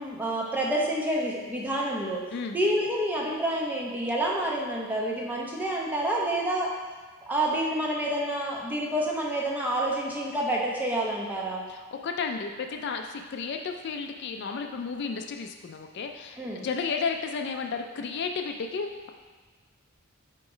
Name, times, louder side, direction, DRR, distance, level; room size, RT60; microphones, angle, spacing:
voice 1, 0.0-2.2 2.5-6.7 7.2-11.6 16.4-16.6, right 1 dB, 10° right, -3 dB, 0.9 m, -28 dB
voice 2, 11.7-19.1, left 5 dB, 55° left, 5 dB, 0.4 m, -33 dB
7.5 x 3.0 x 5.0 m, 1.4 s
head